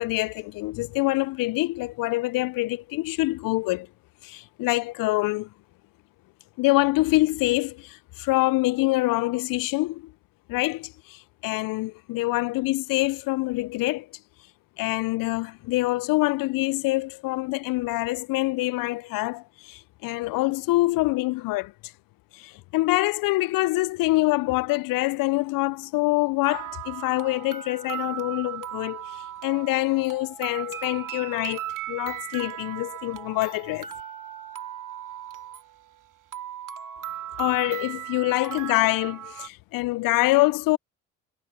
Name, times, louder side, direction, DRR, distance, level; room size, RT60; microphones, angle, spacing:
voice 1, 0.0-3.9 4.2-5.5 6.6-10.1 10.5-14.1 14.8-21.7 22.3-29.0 29.4-33.9 37.4-40.8, left 20 dB, 60° left, 0.7 m, -25 dB
sound 1, 26.4-39.5, right 11 dB, 55° right, 3.1 m, -37 dB
hypercardioid pair, 50°, 38 cm